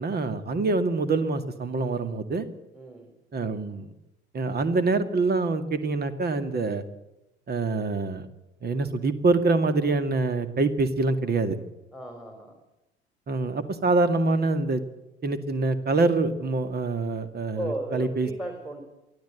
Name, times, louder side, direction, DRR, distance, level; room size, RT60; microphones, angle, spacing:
voice 1, 0.0-2.5 3.3-3.9 4.3-6.8 7.5-8.3 8.6-11.6 13.3-14.8 15.2-18.3, right 3 dB, 30° right, 11 dB, 2.1 m, -25 dB
voice 2, 2.7-3.1 11.9-12.5 17.6-18.8, right 2 dB, 5° right, 3 dB, 4.1 m, -35 dB
23.5 x 15.0 x 8.1 m, 0.96 s
figure-of-eight pair, 65°, 34 cm